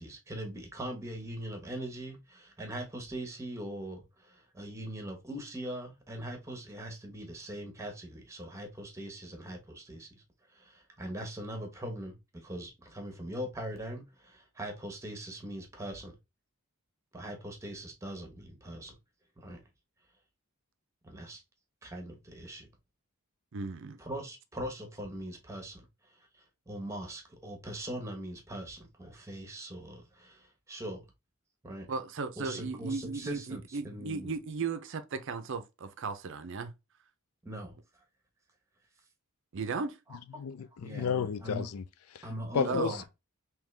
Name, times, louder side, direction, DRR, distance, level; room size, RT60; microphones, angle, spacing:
voice 1, 0.0-10.2 10.5-16.2 17.1-18.9 19.4-19.6 21.0-21.4 21.8-22.7 24.0-31.0 31.6-31.9 32.4-34.3 37.4-38.0 40.1-40.4 40.8-41.7 42.2-43.0, right 1 dB, 15° right, 1.0 m, -41 dB
voice 2, 23.5-24.0 31.9-36.7 39.5-40.0 42.7-42.9, right 4 dB, 55° right, 0.5 m, -36 dB
voice 3, 40.4-41.8 42.1-42.2 42.5-43.0, left 6 dB, 75° left, 0.4 m, -32 dB
3.6 x 3.0 x 3.2 m
head